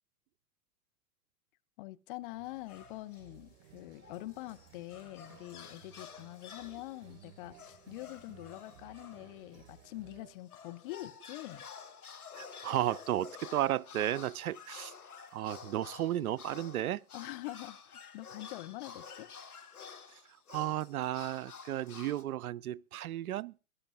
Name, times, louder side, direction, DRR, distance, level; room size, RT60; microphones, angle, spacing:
voice 1, 1.8-11.7 17.1-19.3, left 18 dB, 35° left, 0.6 m, -45 dB
sound 1, 2.2-10.3, right 10 dB, 50° right, 5.2 m, -59 dB
sound 2, 2.4-3.3 3.8-9.8 10.3-22.2, left 6 dB, 80° left, 1.5 m, -51 dB
voice 2, 12.4-14.9 15.3-17.0 20.5-23.5, right 13 dB, 75° right, 0.5 m, -34 dB
21.5 x 11.0 x 2.5 m
figure-of-eight pair, 100°, 44 cm